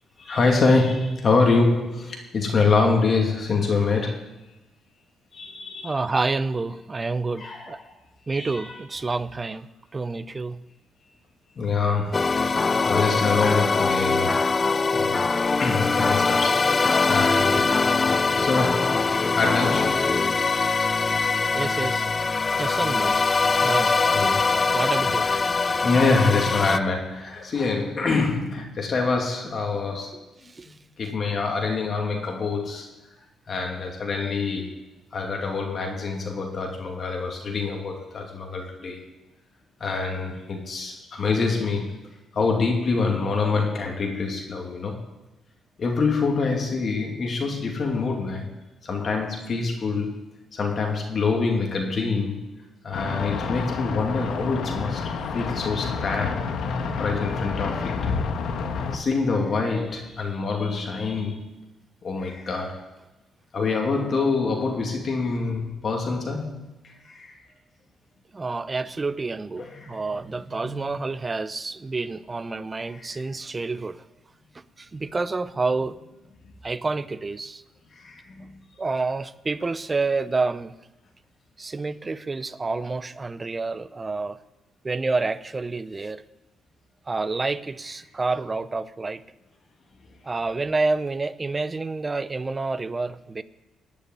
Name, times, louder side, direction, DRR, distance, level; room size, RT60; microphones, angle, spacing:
voice 1, 0.2-4.3 5.3-6.0 7.4-7.9 8.3-8.8 11.6-12.4 12.8-17.7 18.4-20.1 24.1-24.9 25.3-30.2 31.0-32.9 33.5-34.8 35.1-39.0 39.8-41.9 42.3-45.0 45.8-48.5 48.8-50.3 50.5-52.5 52.8-56.5 57.0-58.1 58.9-61.5 62.0-62.9 63.5-66.6 66.8-67.4 69.6-70.9 72.9-73.2 77.9-78.5, left 4 dB, 45° left, 1 dB, 2.5 m, -26 dB
voice 2, 5.8-7.8 8.3-9.7 9.9-10.6 21.5-22.1 22.6-23.2 23.6-23.9 24.7-25.3 30.5-30.7 68.3-74.0 74.8-75.9 76.6-77.6 78.8-80.7 81.6-84.4 84.8-86.2 87.1-89.2 90.2-93.4, right 3 dB, 25° right, 14 dB, 0.7 m, -28 dB
sound 1, 12.1-26.8, left 4 dB, 30° left, 0.5 m, -22 dB
sound 2, 52.9-59.0, left 5 dB, 75° left, 1.4 m, -29 dB
18.0 x 6.8 x 9.8 m, 1.0 s
cardioid pair, 90°, 0 cm